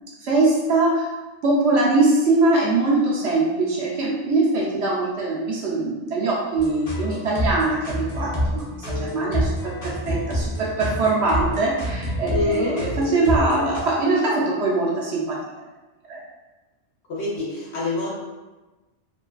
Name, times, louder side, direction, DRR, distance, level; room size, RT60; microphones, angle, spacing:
voice 1, 0.2-1.1 1.4-15.4 16.1-16.2, right 2 dB, 65° right, -5 dB, 0.8 m, -22 dB
sound 1, 6.6-13.8, equal, 45° left, 0.5 m, -27 dB
voice 2, 12.3-12.8 17.1-18.1, left 3 dB, 60° left, -5 dB, 0.9 m, -25 dB
2.5 x 2.2 x 2.3 m, 1.2 s
omnidirectional pair, 1.3 m